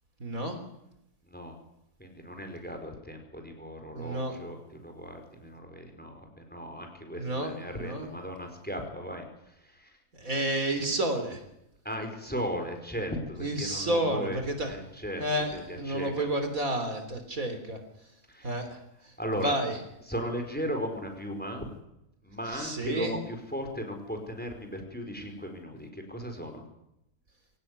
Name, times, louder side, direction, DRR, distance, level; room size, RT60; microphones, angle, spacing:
voice 1, 0.2-0.6 3.9-4.4 7.2-8.1 10.2-11.4 13.4-14.7 15.2-17.8 18.4-18.8 19.4-19.8 22.5-23.2, right 1 dB, 60° right, 6 dB, 4.0 m, -30 dB
voice 2, 1.2-1.6 2.0-10.0 11.8-15.2 15.5-16.3 18.3-18.6 19.2-19.6 20.1-21.7 22.2-26.6, equal, 5° left, 5 dB, 4.7 m, -37 dB
23.5 x 17.5 x 9.7 m, 0.83 s
omnidirectional pair, 1.6 m